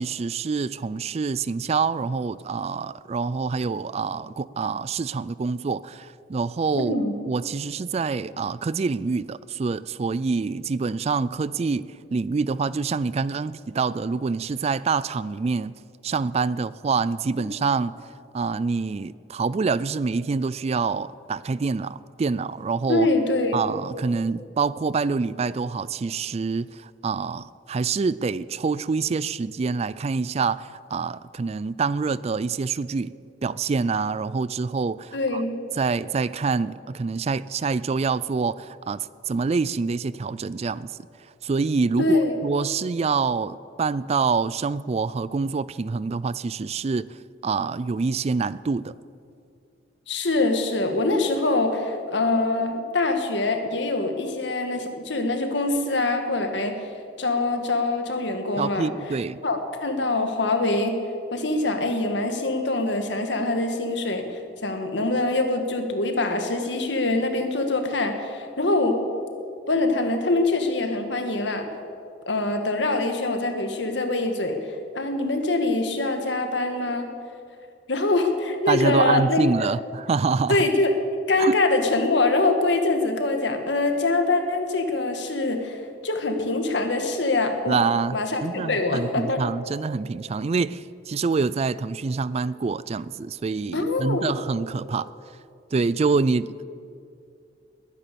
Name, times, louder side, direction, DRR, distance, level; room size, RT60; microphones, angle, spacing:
voice 1, 0.0-6.9 7.2-15.7 16.0-18.0 18.3-23.1 23.5-33.1 33.4-35.4 35.8-40.9 41.4-47.2 47.4-48.9 58.6-59.4 78.7-80.7 81.4-81.6 87.7-95.1 95.7-96.6, right 4 dB, 35° right, 0.3 m, -26 dB
voice 2, 6.8-7.1 22.9-23.6 35.1-35.5 42.0-42.4 50.1-56.7 57.2-58.9 59.4-60.9 61.3-69.0 69.7-71.7 72.3-74.6 74.9-77.1 77.9-79.4 80.5-80.9 81.3-87.8 88.1-89.4 93.7-94.3, left 2 dB, 75° left, 1.8 m, -24 dB
21.0 x 10.0 x 6.9 m
head